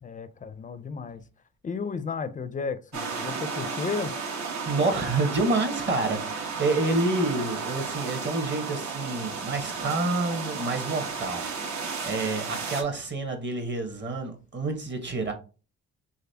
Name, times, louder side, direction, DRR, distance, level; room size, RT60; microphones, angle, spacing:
voice 1, 0.0-1.2 1.6-4.1, left 5 dB, 25° left, 0.4 m, -33 dB
sound 1, 2.9-12.8, right 5 dB, 65° right, 1.1 m, -33 dB
voice 2, 4.6-11.5 12.0-15.3, right 2 dB, 35° right, 1.2 m, -28 dB
4.0 x 3.1 x 2.8 m
cardioid pair, 90°, 30 cm